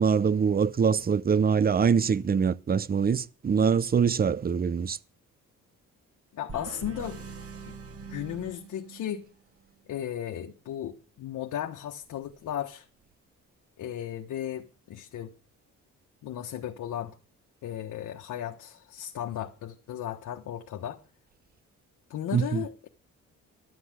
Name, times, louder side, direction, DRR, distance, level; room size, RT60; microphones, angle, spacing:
voice 1, 0.0-5.0 22.3-22.6, right 6 dB, 30° right, 0.7 m, -24 dB
voice 2, 6.3-7.2 7.7-7.8 8.0-9.3 9.9-12.9 13.8-15.3 16.2-17.1 17.6-21.0 22.1-22.9, left 10 dB, 75° left, 1.4 m, -35 dB
sound 1, 6.5-9.3, right 4 dB, 50° right, 2.4 m, -42 dB
11.5 x 8.0 x 7.6 m
cardioid pair, 90°, 30 cm